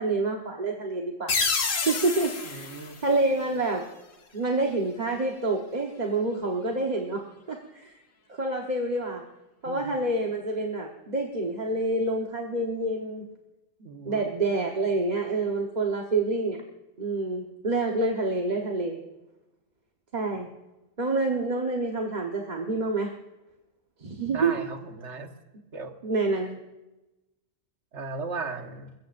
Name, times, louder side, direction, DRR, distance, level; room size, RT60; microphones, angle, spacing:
voice 1, 0.0-1.4 1.8-2.7 3.0-3.9 4.3-8.0 8.4-9.2 9.6-13.3 14.0-16.6 17.0-19.0 20.1-20.5 21.0-23.1 24.0-24.5 26.0-26.6, right 2 dB, 35° right, 0 dB, 1.3 m, -27 dB
sound 1, 1.3-3.9, left 4 dB, 85° left, 1.7 m, -29 dB
voice 2, 2.4-3.0 9.7-10.0 13.8-14.3 24.3-25.3 25.7-25.9 27.9-28.9, right 4 dB, 65° right, 5 dB, 1.7 m, -36 dB
29.5 x 15.5 x 2.6 m, 1.0 s
omnidirectional pair, 1.3 m